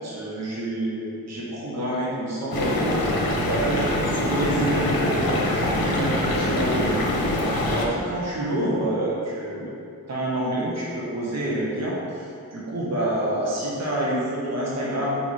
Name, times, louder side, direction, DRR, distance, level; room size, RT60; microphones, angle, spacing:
voice 1, 0.0-3.0 3.5-7.2 7.7-9.7 10.1-15.1, right 1 dB, 45° right, -6 dB, 1.2 m, -27 dB
sound 1, 2.5-7.8, left 1 dB, 75° left, 1.1 m, -24 dB
5.5 x 4.3 x 4.8 m, 2.6 s
cardioid pair, 70°, 35 cm